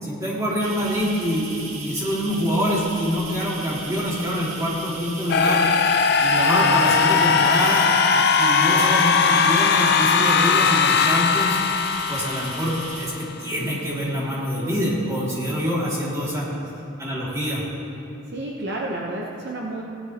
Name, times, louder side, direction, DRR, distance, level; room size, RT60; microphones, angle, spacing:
voice 1, 0.0-5.7 6.2-7.9 8.4-11.6 12.1-16.5 17.0-17.6, equal, 15° right, -7 dB, 2.3 m, -25 dB
sound 1, 0.6-13.1, right 3 dB, 70° right, 2.1 m, -37 dB
sound 2, 5.3-13.2, left 5 dB, 50° left, 0.5 m, -19 dB
voice 2, 18.3-19.8, right 1 dB, 50° right, -2 dB, 0.9 m, -31 dB
17.0 x 11.0 x 2.9 m, 2.8 s
head